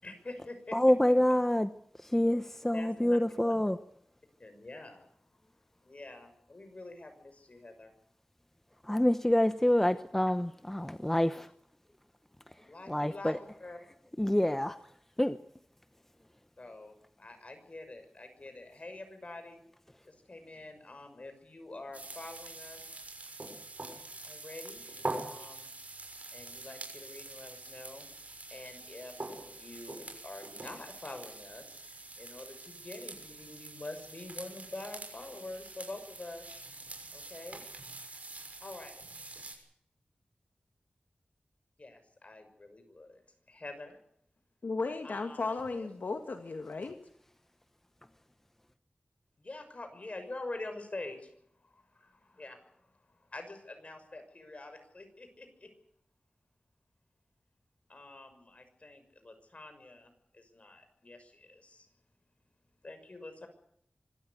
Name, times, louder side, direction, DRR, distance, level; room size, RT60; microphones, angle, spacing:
voice 1, 0.0-0.8 1.0-1.1 2.7-3.5 4.4-5.1 5.8-7.9 12.6-13.8 16.6-19.6 20.0-22.8 24.2-25.7 26.3-28.1 28.5-36.6 37.1-37.6 38.6-39.0 41.8-43.2 43.5-44.0 45.0-45.9 49.4-51.3 51.6-55.7 57.9-61.9 62.8-63.5, left 2 dB, 45° left, 6.2 m, -46 dB
voice 2, 0.7-1.7 2.1-3.8 8.9-11.5 12.9-13.3 14.2-14.8 15.2-15.4, left 1 dB, 10° left, 0.9 m, -26 dB
sound 1, 21.9-39.5, right 2 dB, 50° right, 6.4 m, -45 dB
voice 3, 44.6-47.0, left 3 dB, 75° left, 2.0 m, -35 dB
25.0 x 13.5 x 9.9 m
wide cardioid pair, 85°, 3 cm